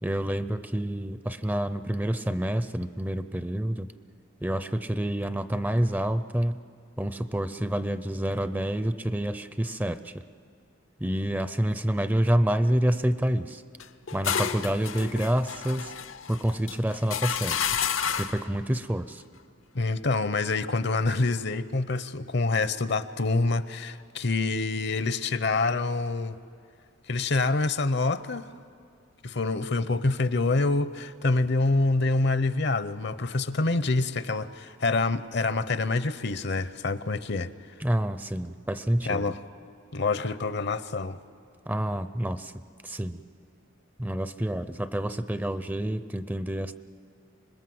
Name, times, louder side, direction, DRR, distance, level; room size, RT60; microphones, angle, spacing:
voice 1, 0.0-3.9 4.4-6.6 7.0-10.2 11.0-13.6 14.1-15.9 16.3-17.6 18.2-19.2 37.8-39.4 41.7-42.5 42.8-43.2 44.0-46.7, right 1 dB, 10° right, 12 dB, 0.5 m, -28 dB
sound 1, 13.8-18.5, left 7 dB, 80° left, 0.8 m, -31 dB
voice 2, 19.7-26.4 27.1-28.5 29.2-37.5 39.1-39.4 39.9-41.2, left 3 dB, 55° left, 14 dB, 0.8 m, -26 dB
26.0 x 20.5 x 7.8 m, 2.3 s
head